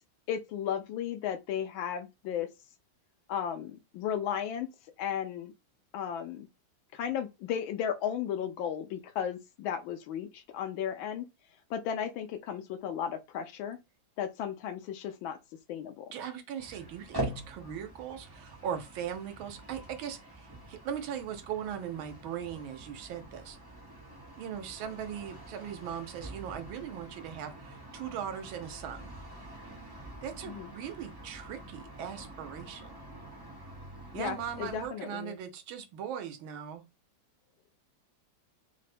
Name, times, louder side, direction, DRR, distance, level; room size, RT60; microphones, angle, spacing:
voice 1, 0.3-2.5 3.3-4.7 5.0-5.5 5.9-6.5 6.9-11.3 11.7-13.8 14.2-15.4 15.7-16.1 30.5-30.7 34.1-35.4, left 9 dB, 85° left, 1.4 m, -35 dB
voice 2, 16.1-23.6 24.4-29.1 30.2-32.9 34.1-36.8, right 9 dB, 85° right, 1.6 m, -39 dB
sound 1, 16.6-34.9, right 1 dB, 15° right, 0.8 m, -45 dB
3.9 x 2.1 x 4.2 m
omnidirectional pair, 2.1 m